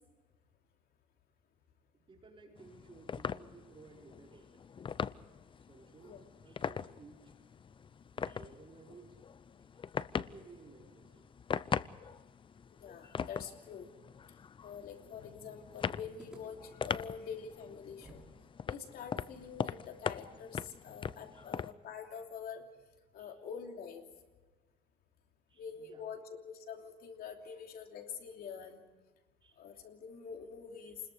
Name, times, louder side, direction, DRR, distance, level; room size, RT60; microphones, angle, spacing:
voice 1, 1.9-4.5 5.7-7.3 8.1-9.2 9.7-9.8 10.1-11.3 21.3-21.4 23.2-23.3 25.5-26.0 27.4-27.6 29.4-29.6 30.9-31.0, right 4 dB, 30° right, 0 dB, 4.6 m, -57 dB
sound 1, 2.6-21.7, left 6 dB, 30° left, 0.6 m, -41 dB
voice 2, 12.7-13.9 14.6-18.2 18.7-22.7 23.1-24.0 25.6-28.8 29.6-31.0, left 7 dB, 65° left, 3 dB, 3.0 m, -46 dB
sound 2, 16.2-18.4 18.6-18.7 19.3-22.4, right 1 dB, 5° right, 6.1 m, -60 dB
28.5 x 21.0 x 4.9 m, 1.2 s
cardioid pair, 110°, 17 cm